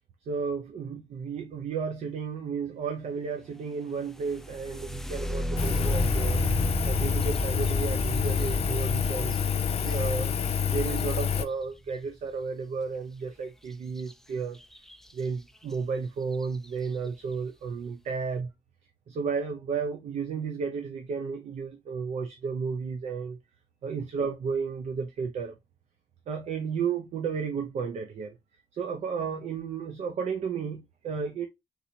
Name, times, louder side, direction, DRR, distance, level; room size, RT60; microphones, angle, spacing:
voice 1, 0.3-6.4 6.9-9.3 9.8-14.6 15.1-18.5 19.1-23.4 23.8-25.5 26.3-28.4 28.7-31.5, right 5 dB, 80° right, 0.7 m, -33 dB
sound 1, 4.1-11.9 14.0-14.1 14.5-15.1 15.7-15.8 16.3-16.7, equal, 5° left, 0.4 m, -32 dB
Engine, 5.6-11.4, left 7 dB, 65° left, 0.5 m, -28 dB
4.3 x 4.0 x 2.8 m
cardioid pair, 95°, 11 cm